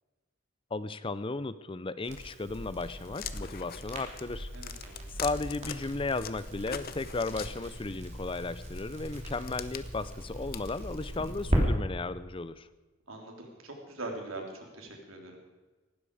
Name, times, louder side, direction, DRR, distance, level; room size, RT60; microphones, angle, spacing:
voice 1, 0.7-4.5 5.2-12.7, left 3 dB, 25° left, 15 dB, 0.5 m, -35 dB
Crackle, 2.0-11.6, equal, 35° right, 3.0 m, -38 dB
sound 1, 3.1-5.8 6.2-8.0 8.7-11.4, left 8 dB, 45° left, 0.9 m, -43 dB
voice 2, 4.5-5.1 13.1-15.4, right 2 dB, 85° right, 1 dB, 3.8 m, -42 dB
18.5 x 15.5 x 5.0 m, 1.2 s
head